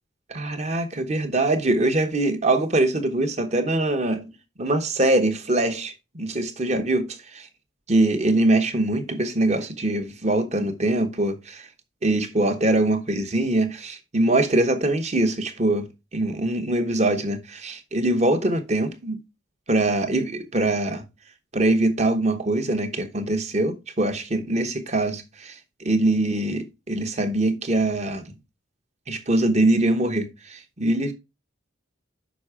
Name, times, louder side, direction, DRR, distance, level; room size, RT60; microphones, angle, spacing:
voice 1, 0.3-4.2 4.6-7.5 7.9-11.7 12.0-19.2 19.7-21.0 21.5-28.2 29.1-31.1, right 2 dB, 35° right, 1.0 m, -23 dB
6.2 x 5.3 x 4.8 m
head